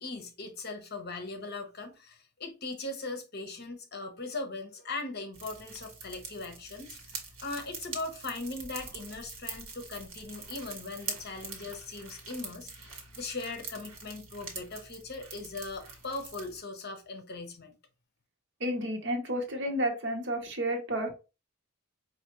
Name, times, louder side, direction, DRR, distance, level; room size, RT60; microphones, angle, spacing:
voice 1, 0.0-17.7, left 3 dB, 50° left, 0.9 m, -39 dB
sound 1, 5.3-16.6, right 4 dB, 80° right, 1.5 m, -44 dB
voice 2, 18.6-21.1, right 1 dB, 55° right, 1.1 m, -31 dB
5.0 x 2.6 x 3.0 m
head